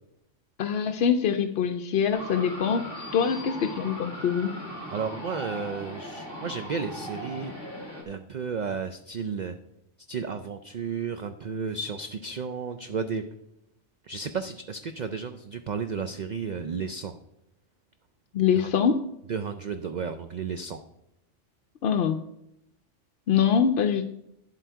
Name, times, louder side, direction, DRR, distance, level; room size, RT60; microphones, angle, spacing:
voice 1, 0.6-4.5 18.3-19.1 21.8-22.2 23.3-24.0, left 7 dB, 65° left, 6 dB, 0.7 m, -24 dB
sound 1, 2.1-8.0, equal, 20° right, 2.1 m, -39 dB
voice 2, 4.9-7.5 8.1-9.6 10.1-13.2 14.0-17.2 18.6-18.7 19.3-20.8, right 5 dB, 55° right, 8 dB, 0.5 m, -33 dB
10.0 x 7.7 x 4.6 m, 0.82 s
omnidirectional pair, 1.2 m